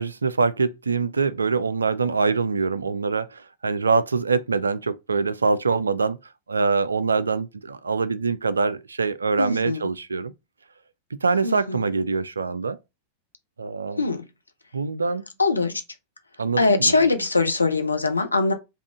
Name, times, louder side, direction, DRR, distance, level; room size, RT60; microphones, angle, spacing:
voice 1, 0.0-6.2 6.5-10.3 11.2-12.8 13.6-14.0 14.7-15.2 16.4-17.0, right 4 dB, 75° right, 0.3 m, -24 dB
voice 2, 9.4-9.9 11.4-11.9 14.0-14.2 15.4-15.7 16.6-18.5, left 3 dB, 80° left, 0.5 m, -22 dB
3.5 x 2.4 x 3.5 m
figure-of-eight pair, 90°, 0 cm